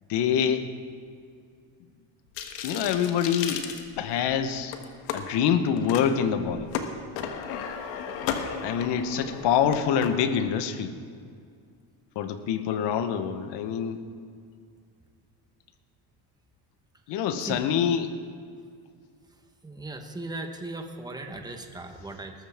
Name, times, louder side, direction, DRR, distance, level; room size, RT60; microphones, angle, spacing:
voice 1, 0.1-0.6 2.6-3.6 4.0-4.7 5.1-6.7 8.6-11.0 12.1-14.0 17.1-18.1, left 8 dB, 65° left, 9 dB, 1.2 m, -25 dB
sound 1, 2.4-4.3 4.7-5.2 5.8-6.0 6.4-10.1, left 7 dB, 90° left, 1.4 m, -34 dB
voice 2, 19.6-22.3, right 2 dB, 10° right, 5 dB, 1.3 m, -37 dB
20.5 x 13.5 x 3.6 m, 2.2 s
cardioid pair, 120°, 44 cm